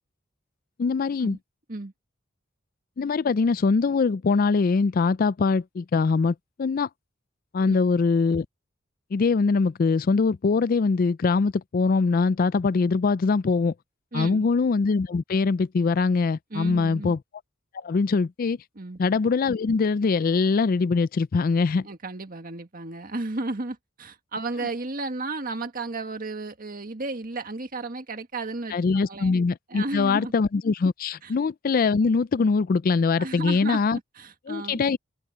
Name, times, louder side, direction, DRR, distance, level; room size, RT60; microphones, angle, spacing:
voice 1, 0.8-1.4 3.0-6.9 7.5-8.5 9.1-13.7 14.1-17.2 17.7-18.6 19.0-21.9 28.7-34.0 34.5-35.0, left 4 dB, 45° left, 0.4 m, -23 dB
voice 2, 14.1-14.5 16.5-17.1 18.8-19.0 21.8-29.3 29.7-30.3 31.2-31.3 33.2-34.9, right 2 dB, 45° right, 1.7 m, -33 dB
open air
head